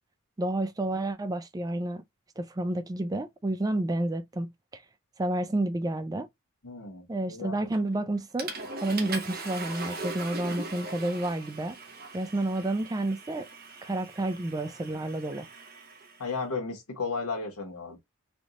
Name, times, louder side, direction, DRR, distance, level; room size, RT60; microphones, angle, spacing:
voice 1, 0.4-2.0 2.4-4.8 5.2-6.3 7.1-8.5 8.8-11.8 12.1-13.5 13.8-15.5, right 1 dB, 15° right, 0.3 m, -30 dB
voice 2, 6.6-7.6 16.2-18.0, left 4 dB, 75° left, 1.1 m, -34 dB
Water / Toilet flush, 7.7-8.0 8.4-16.3, right 3 dB, 45° right, 0.9 m, -40 dB
3.5 x 2.4 x 3.8 m
head